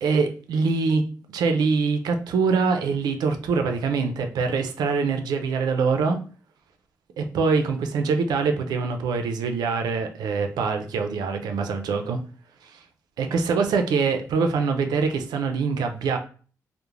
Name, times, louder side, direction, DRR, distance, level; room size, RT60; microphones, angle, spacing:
voice 1, 0.0-1.0 1.3-6.2 7.2-12.2 12.6-12.8 13.2-16.2, right 4 dB, 85° right, 6 dB, 0.4 m, -24 dB
2.4 x 2.0 x 3.0 m, 0.40 s
cardioid pair, 55°, 7 cm